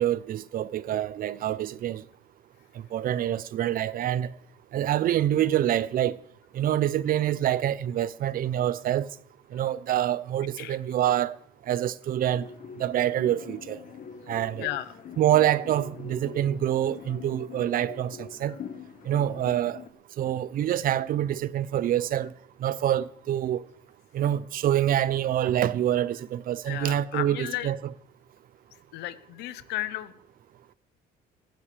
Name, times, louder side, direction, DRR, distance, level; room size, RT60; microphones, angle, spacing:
voice 1, 0.0-2.0 2.9-4.3 4.7-6.2 6.5-9.1 9.5-11.3 11.7-12.5 12.8-13.8 14.3-14.7 15.2-18.5 19.1-19.8 20.2-22.3 22.6-23.6 24.1-27.9, right 11 dB, 60° right, 0.7 m, -26 dB
sound 1, 12.3-19.9, left 7 dB, 55° left, 1.5 m, -44 dB
voice 2, 14.6-14.9 26.7-27.7 28.9-30.1, left 15 dB, 85° left, 0.9 m, -34 dB
18.0 x 15.0 x 3.4 m
cardioid pair, 110°, 17 cm